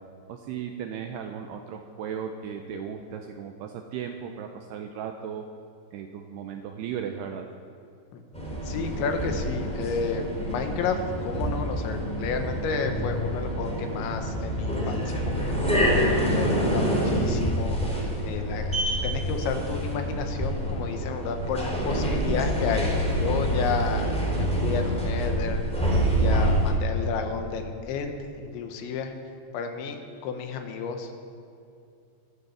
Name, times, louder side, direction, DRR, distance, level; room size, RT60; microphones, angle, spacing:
voice 1, 0.3-5.4 5.9-7.5, right 8 dB, 80° right, 4 dB, 2.6 m, -36 dB
sound 1, 8.3-26.7, equal, ahead, 2.5 m, -27 dB
voice 2, 8.6-15.5 16.3-17.8 18.2-29.1 29.5-30.0 30.2-31.1, left 5 dB, 85° left, 5 dB, 3.6 m, -31 dB
23.5 x 8.3 x 7.4 m, 2.5 s
omnidirectional pair, 5.2 m